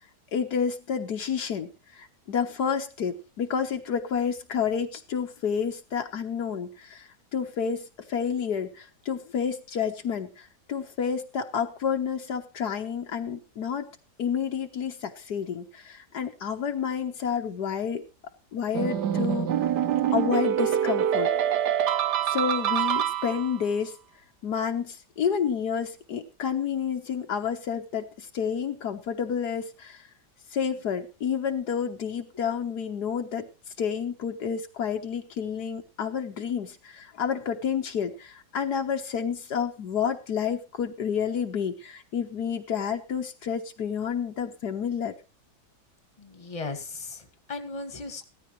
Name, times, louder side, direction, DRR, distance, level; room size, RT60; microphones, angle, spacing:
voice 1, 0.3-1.7 1.9-13.9 14.2-18.0 18.5-19.5 20.1-21.3 22.2-24.0 24.4-30.0 30.5-33.5 33.8-45.1, left 7 dB, 75° left, 5 dB, 1.7 m, -30 dB
sound 1, 18.7-23.7, right 10 dB, 80° right, 1.5 m, -25 dB
voice 2, 46.2-48.3, left 3 dB, 20° left, 7 dB, 1.8 m, -37 dB
17.0 x 13.5 x 3.1 m, 0.30 s
omnidirectional pair, 1.8 m